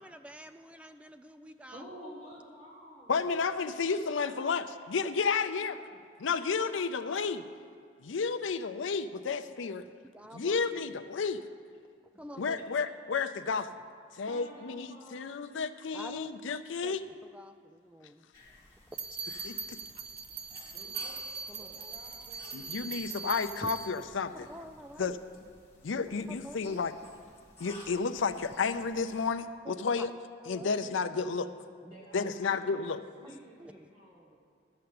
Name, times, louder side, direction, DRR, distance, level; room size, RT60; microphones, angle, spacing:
voice 1, 0.0-1.8 9.3-10.6 12.2-12.6 15.9-18.3 21.5-21.7 23.6-23.7 24.3-25.2 26.3-26.8 29.6-29.7 30.0-30.1 30.4-31.0 33.2-33.9, right 1 dB, 5° right, 9 dB, 0.3 m, -48 dB
voice 2, 1.7-3.3 4.2-4.8 5.6-6.0 6.3-7.7 10.4-11.0 14.2-15.6 20.7-21.2 21.6-23.6 31.8-34.4, equal, 25° right, -6 dB, 1.7 m, -51 dB
voice 3, 3.1-5.8 6.2-7.4 8.0-9.8 10.3-11.4 12.4-13.7 14.1-17.0 19.4-19.8 22.5-24.3 25.0-25.2 25.8-26.9 27.6-30.1 30.5-31.5 32.1-33.0, left 5 dB, 80° left, 9 dB, 0.5 m, -32 dB
sound 1, 18.3-29.3, left 2 dB, 15° left, 2.0 m, -55 dB
sound 2, 18.9-24.0, right 5 dB, 45° right, 0.8 m, -41 dB
13.0 x 6.7 x 7.7 m, 2.2 s
head